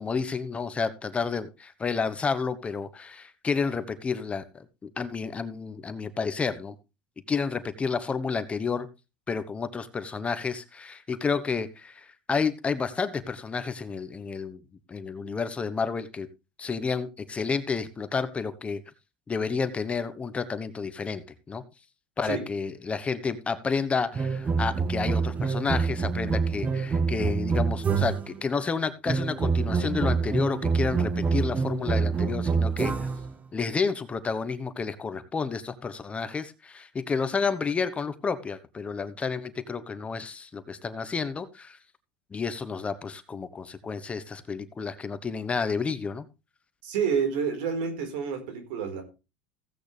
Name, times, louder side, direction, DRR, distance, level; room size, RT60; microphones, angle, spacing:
voice 1, 0.0-6.7 7.3-8.9 9.3-14.6 14.9-16.3 16.6-18.8 19.3-21.6 22.2-32.9 33.5-41.8 42.3-46.2, left 5 dB, 20° left, 12 dB, 1.1 m, -30 dB
sound 1, 24.1-28.4 29.1-33.3, right 5 dB, 25° right, 1.3 m, -26 dB
voice 2, 46.8-49.0, right 6 dB, 75° right, 6 dB, 4.6 m, -28 dB
16.0 x 8.5 x 3.4 m, 0.29 s
supercardioid pair, 105°, 6 cm